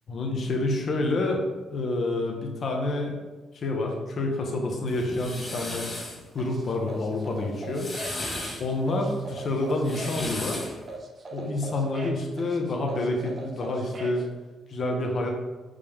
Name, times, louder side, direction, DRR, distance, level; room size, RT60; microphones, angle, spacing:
voice 1, 0.1-1.4 1.7-3.2 3.5-5.9 6.3-7.9 8.6-10.7 11.3-14.2 14.7-15.3, left 2 dB, 55° left, 1 dB, 1.0 m, -28 dB
sound 1, 4.9-6.2 7.5-8.6 9.7-10.8, left 1 dB, 30° left, 2.0 m, -35 dB
sound 2, 6.4-14.2, right 2 dB, 35° right, 0.9 m, -40 dB
5.2 x 5.2 x 3.5 m, 1.2 s
cardioid pair, 90°, 0 cm